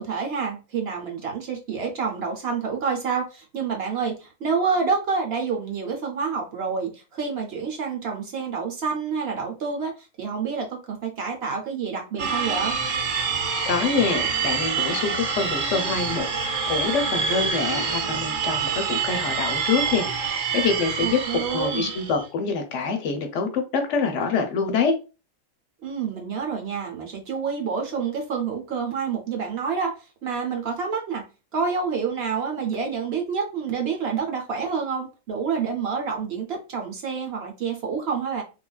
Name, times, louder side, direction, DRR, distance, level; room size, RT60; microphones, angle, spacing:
voice 1, 0.0-12.8 21.0-21.9 25.8-31.2 31.5-38.4, right 5 dB, 60° right, 0.8 m, -28 dB
sound 1, 12.2-22.2, right 6 dB, 80° right, 1.1 m, -26 dB
voice 2, 13.7-21.2 21.5-25.0, left 5 dB, 70° left, 0.9 m, -26 dB
3.2 x 2.3 x 2.2 m
omnidirectional pair, 1.4 m